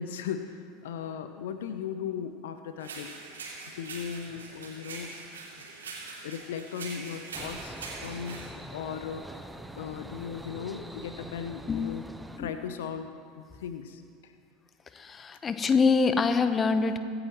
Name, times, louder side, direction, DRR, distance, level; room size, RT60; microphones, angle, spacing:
voice 1, 0.0-3.1 3.7-5.1 6.2-7.8 8.0-12.0 12.4-14.3, left 7 dB, 70° left, 9 dB, 0.6 m, -37 dB
sound 1, 2.8-8.5, right 4 dB, 80° right, 2.7 m, -42 dB
sound 2, 7.3-12.4, right 1 dB, 5° right, 0.7 m, -44 dB
voice 2, 11.7-12.6 14.9-17.0, left 4 dB, 25° left, 9 dB, 0.9 m, -26 dB
24.0 x 8.9 x 3.0 m, 2.4 s
figure-of-eight pair, 80°, 0 cm